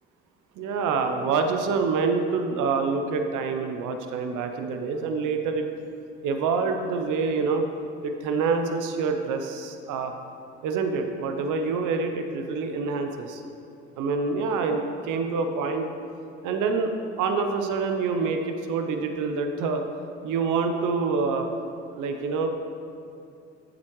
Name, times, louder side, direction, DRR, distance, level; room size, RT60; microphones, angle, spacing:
voice 1, 0.6-5.7 6.2-7.6 8.0-10.1 10.6-13.4 14.0-15.9 16.4-16.9 17.2-19.8 20.2-21.5 22.0-22.5, right 4 dB, 65° right, 5 dB, 0.8 m, -26 dB
11.0 x 7.5 x 3.1 m, 2.6 s
hypercardioid pair, 55°, 33 cm